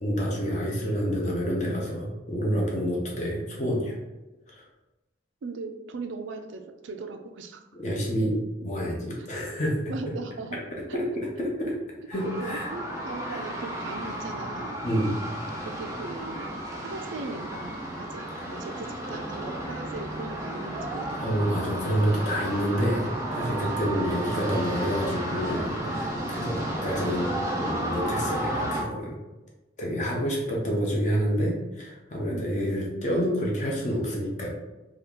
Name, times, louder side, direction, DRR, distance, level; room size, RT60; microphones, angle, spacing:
voice 1, 0.0-3.9 4.5-4.6 7.8-8.3 8.6-9.8 10.7-11.7 12.1-12.7 13.2-13.5 14.8-15.2 21.1-27.3 27.6-29.2 29.8-34.5, equal, 40° left, -3 dB, 0.7 m, -28 dB
voice 2, 5.4-7.6 9.2-9.3 9.9-10.6 10.9-11.0 12.3-14.8 15.6-16.5 16.8-21.2 26.3-26.7 32.3-32.6, right 3 dB, 75° right, 6 dB, 0.4 m, -38 dB
sound 1, 12.1-28.8, right 1 dB, 15° right, 0.5 m, -33 dB
2.8 x 2.4 x 3.5 m, 1.1 s
head